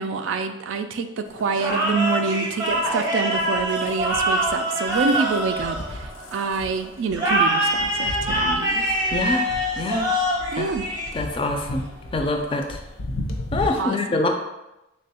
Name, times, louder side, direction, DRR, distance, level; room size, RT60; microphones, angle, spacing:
voice 1, 0.0-8.9 10.5-10.9 13.8-14.2, right 4 dB, 90° right, 8 dB, 0.3 m, -27 dB
sound 1, 1.2-13.7, left 1 dB, 90° left, 0.6 m, -37 dB
sound 2, 1.6-6.4 7.1-11.5, right 1 dB, 20° right, 0.6 m, -24 dB
voice 2, 9.1-9.4 9.8-10.1 10.6-10.7 11.1-11.8 12.1-12.6 13.5-14.3, left 2 dB, 25° left, 4 dB, 0.3 m, -24 dB
3.4 x 2.2 x 4.1 m, 0.94 s
head